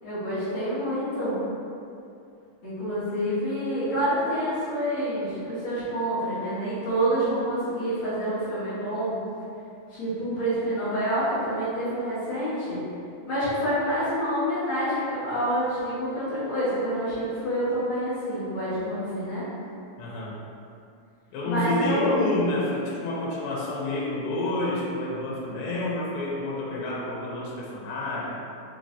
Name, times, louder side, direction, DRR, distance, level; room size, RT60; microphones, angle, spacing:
voice 1, 0.0-1.4 2.6-9.1 9.9-12.8 13.3-19.4 21.4-22.3, equal, 65° left, -13 dB, 1.1 m, -27 dB
voice 2, 20.0-20.4 21.3-28.4, left 2 dB, 85° left, -4 dB, 2.4 m, -29 dB
5.3 x 3.1 x 2.7 m, 2.5 s
omnidirectional pair, 4.2 m